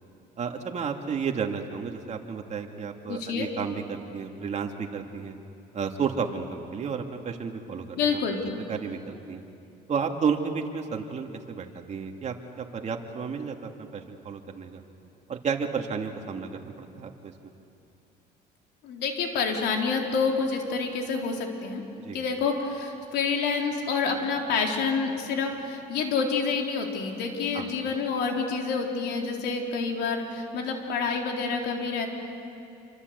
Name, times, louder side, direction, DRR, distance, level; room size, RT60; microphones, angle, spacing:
voice 1, 0.4-5.4 5.7-8.2 8.7-9.4 9.9-14.8 15.3-17.3 22.0-22.2 27.5-27.7, right 6 dB, 40° right, 3 dB, 2.6 m, -32 dB
voice 2, 3.1-3.5 8.0-8.4 18.8-21.8 22.1-32.1, left 5 dB, 80° left, 2 dB, 3.8 m, -28 dB
27.5 x 25.0 x 8.3 m, 2.6 s
cardioid pair, 110°, 17 cm